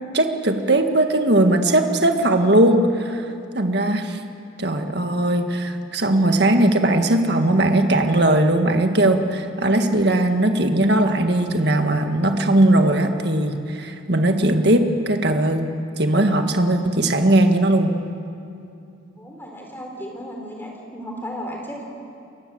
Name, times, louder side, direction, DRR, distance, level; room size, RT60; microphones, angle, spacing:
voice 1, 0.1-3.2 3.5-4.2 4.6-17.9, right 1 dB, 55° right, 5 dB, 1.8 m, -19 dB
voice 2, 19.2-21.8, equal, 10° left, 0 dB, 4.1 m, -34 dB
29.0 x 21.5 x 7.9 m, 2.6 s
head